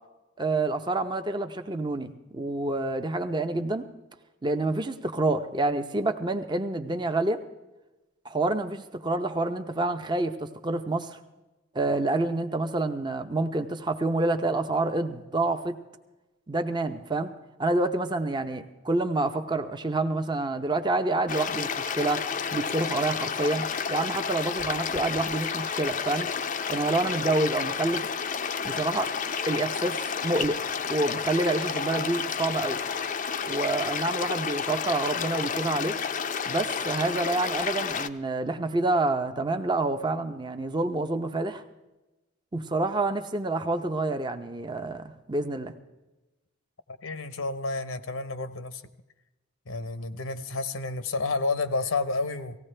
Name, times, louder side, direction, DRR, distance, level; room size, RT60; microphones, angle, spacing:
voice 1, 0.4-3.9 4.4-7.4 8.2-11.2 11.7-15.8 16.5-17.3 17.6-22.2 22.5-26.3 26.7-28.1 28.6-29.1 29.5-30.6 30.9-32.8 33.5-36.0 36.5-41.6 42.5-45.7, right 2 dB, 20° right, 7 dB, 0.6 m, -28 dB
sound 1, 21.3-38.1, left 6 dB, 40° left, 0.5 m, -31 dB
voice 2, 46.9-48.8 49.7-52.6, left 3 dB, 75° left, 12 dB, 0.8 m, -30 dB
18.5 x 15.5 x 3.3 m, 1.1 s
head